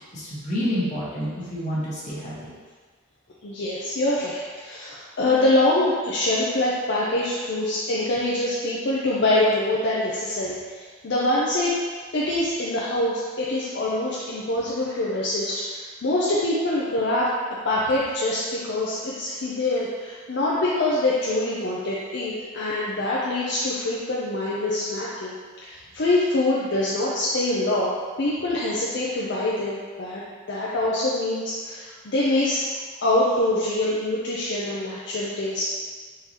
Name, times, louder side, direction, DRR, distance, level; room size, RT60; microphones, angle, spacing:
voice 1, 0.1-2.4, equal, 35° left, -8 dB, 1.2 m, -28 dB
voice 2, 3.4-11.7 12.1-17.3 17.6-25.4 25.6-32.7 33.0-35.8, left 1 dB, 55° left, -6 dB, 0.5 m, -24 dB
4.5 x 3.8 x 2.8 m, 1.5 s
head